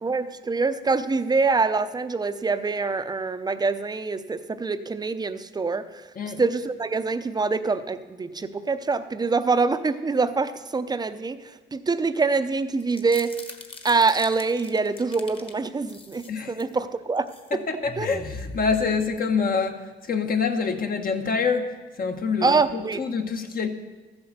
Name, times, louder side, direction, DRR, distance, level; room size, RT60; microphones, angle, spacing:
voice 1, 0.0-6.1 6.4-13.4 13.8-17.3 18.0-18.2 22.4-23.0, right 4 dB, 20° right, 0.7 m, -25 dB
sound 1, 12.8-15.5 15.9-16.7 17.2-17.5 17.8-19.5, left 2 dB, 25° left, 1.5 m, -40 dB
voice 2, 17.5-23.7, left 5 dB, 45° left, 1.3 m, -26 dB
14.0 x 7.9 x 6.7 m
cardioid pair, 90°, 20 cm